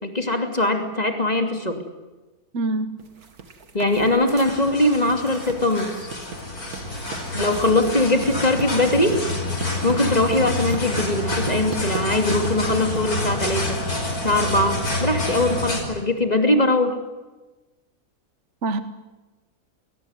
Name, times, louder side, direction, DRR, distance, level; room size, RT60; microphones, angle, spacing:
voice 1, 0.0-1.8 3.7-6.1 7.3-9.2 9.8-13.8 14.2-17.0, left 1 dB, 25° left, 5 dB, 2.8 m, -21 dB
voice 2, 2.5-3.0 7.4-7.5 18.6-18.8, right 2 dB, 55° right, 11 dB, 1.4 m, -25 dB
sound 1, 3.0-14.9, right 5 dB, 85° right, 2.5 m, -38 dB
sound 2, 4.3-15.8, left 2 dB, 90° left, 5.7 m, -28 dB
21.5 x 19.5 x 9.6 m, 1.1 s
omnidirectional pair, 1.5 m